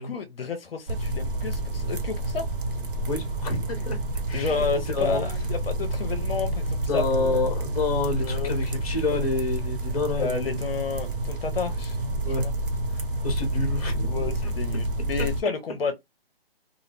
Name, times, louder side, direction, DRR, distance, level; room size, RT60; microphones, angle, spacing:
voice 1, 0.0-2.5 4.3-7.3 8.2-8.5 10.2-12.0 12.3-12.5 14.0-15.9, left 5 dB, 70° left, 0.6 m, -31 dB
sound 1, 0.9-15.4, right 1 dB, 60° right, 0.7 m, -29 dB
voice 2, 3.1-4.0 4.3-5.2 6.9-10.6 12.2-12.5 12.9-14.1 14.4-14.5, left 3 dB, 35° left, 0.8 m, -28 dB
2.3 x 2.0 x 3.2 m
hypercardioid pair, 160°, 30 cm